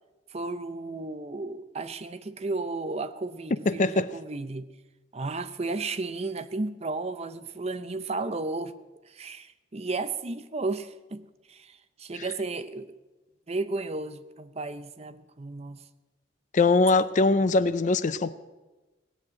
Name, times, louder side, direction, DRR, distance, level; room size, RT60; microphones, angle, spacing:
voice 1, 0.3-4.7 5.1-8.7 9.1-12.9 13.5-15.8, right 3 dB, 35° right, 0.6 m, -33 dB
voice 2, 3.7-4.1 12.1-12.3 16.5-18.3, left 3 dB, 40° left, 0.5 m, -22 dB
18.0 x 8.1 x 8.5 m
head